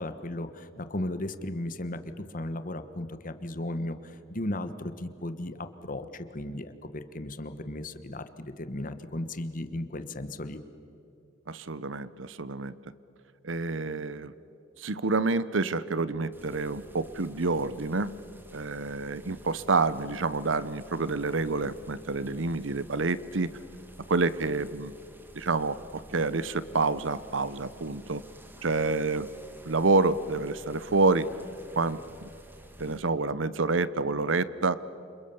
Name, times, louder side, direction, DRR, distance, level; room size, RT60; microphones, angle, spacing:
voice 1, 0.0-10.6, left 1 dB, 45° left, 10 dB, 1.3 m, -36 dB
voice 2, 11.5-12.8 13.4-14.3 14.8-18.1 18.5-23.5 24.1-24.9 25.3-28.2 28.6-29.3 29.7-31.3 31.8-32.3 32.8-34.8, right 3 dB, 75° right, 16 dB, 0.9 m, -28 dB
sound 1, 16.3-33.0, right 1 dB, 10° right, 1.8 m, -51 dB
28.5 x 27.0 x 7.1 m, 2.7 s
head